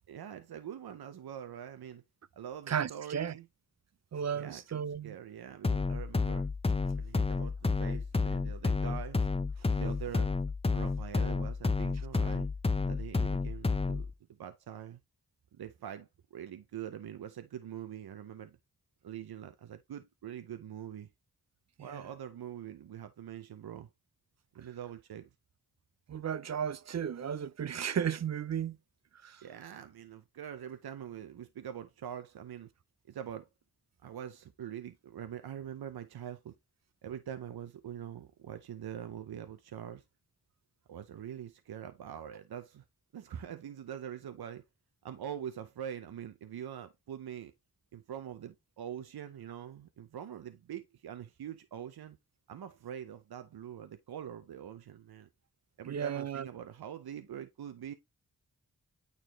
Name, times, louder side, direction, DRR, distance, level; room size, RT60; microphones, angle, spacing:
voice 1, 0.1-2.0 2.4-3.5 4.3-6.5 7.0-7.5 7.8-9.2 9.8-10.3 10.7-12.5 12.9-15.0 15.6-18.6 19.0-21.1 21.8-23.9 24.5-25.3 29.4-32.7 33.1-33.5 34.0-36.5 37.0-40.0 40.9-42.8 43.1-44.6 45.0-47.5 47.9-52.2 52.5-55.3 55.8-57.9, right 9 dB, 85° right, 0.7 m, -44 dB
voice 2, 2.7-3.3 4.1-5.2 21.8-22.1 26.1-28.8 29.2-29.4 55.9-56.5, right 8 dB, 45° right, 0.5 m, -34 dB
sound 1, 5.6-14.1, left 4 dB, 15° left, 0.5 m, -31 dB
9.2 x 4.2 x 3.0 m
cardioid pair, 65°, 36 cm